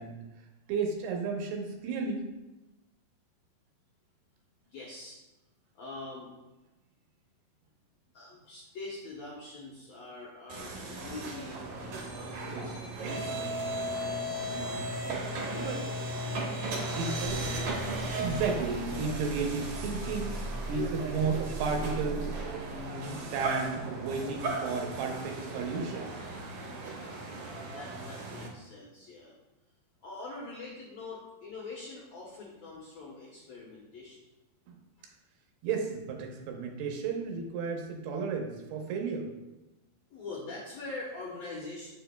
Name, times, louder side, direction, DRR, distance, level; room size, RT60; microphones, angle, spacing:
voice 1, 0.0-2.2 12.5-12.7 13.3-13.6 14.4-14.9 15.5-15.8 16.7-20.4 20.7-26.1 34.7-34.8 35.6-39.3, right 4 dB, 85° right, 2 dB, 2.9 m, -34 dB
voice 2, 4.7-5.2 5.7-6.3 8.1-14.2 15.5-15.8 16.2-16.4 27.5-29.3 30.0-34.2 40.1-41.9, left 3 dB, 75° left, -5 dB, 1.6 m, -44 dB
sound 1, 10.5-28.5, right 1 dB, 65° right, 1.9 m, -36 dB
8.1 x 6.8 x 2.3 m, 1.0 s
omnidirectional pair, 4.5 m